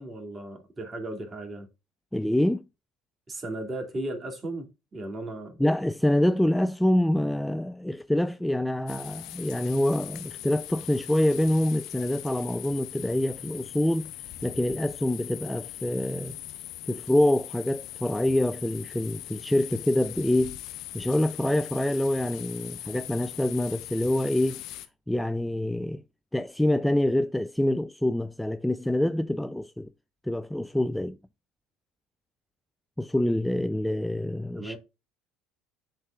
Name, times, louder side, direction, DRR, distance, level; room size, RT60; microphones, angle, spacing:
voice 1, 0.0-1.7 3.3-5.6 34.5-34.8, right 2 dB, 25° right, 2.4 m, -36 dB
voice 2, 2.1-2.6 5.6-14.1 14.4-16.4 16.9-20.6 20.9-24.6 25.1-26.0 26.3-29.9 30.2-31.2 33.0-34.8, left 1 dB, 5° left, 0.3 m, -26 dB
sound 1, 8.9-24.9, left 14 dB, 65° left, 0.8 m, -41 dB
10.5 x 4.0 x 2.4 m
hypercardioid pair, 75°, 0 cm